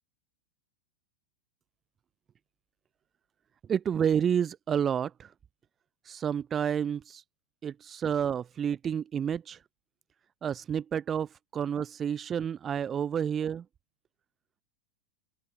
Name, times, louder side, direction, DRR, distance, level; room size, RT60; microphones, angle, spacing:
voice 1, 3.7-5.3 6.1-7.2 7.6-9.6 10.4-13.6, right 8 dB, 25° right, 0.4 m, -30 dB
open air
figure-of-eight pair, 90°, 0 cm